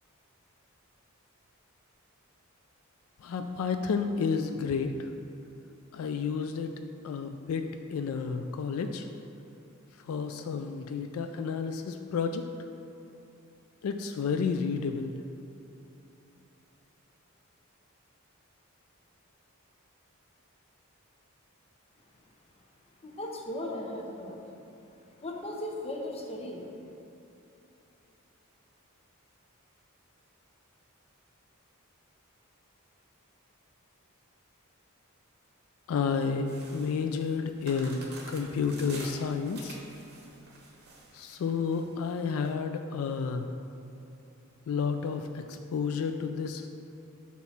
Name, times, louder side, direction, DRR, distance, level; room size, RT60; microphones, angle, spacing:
voice 1, 3.2-5.1 5.9-6.7 7.0-9.1 10.0-12.4 13.8-15.1 35.9-39.8 41.1-43.5 44.7-46.7, left 5 dB, 75° left, 7 dB, 0.3 m, -31 dB
voice 2, 23.0-24.4 25.2-26.7, left 1 dB, 30° left, 0 dB, 0.7 m, -37 dB
sound 1, 36.5-42.5, right 2 dB, 50° right, 1.1 m, -48 dB
7.1 x 3.1 x 5.7 m, 2.8 s
head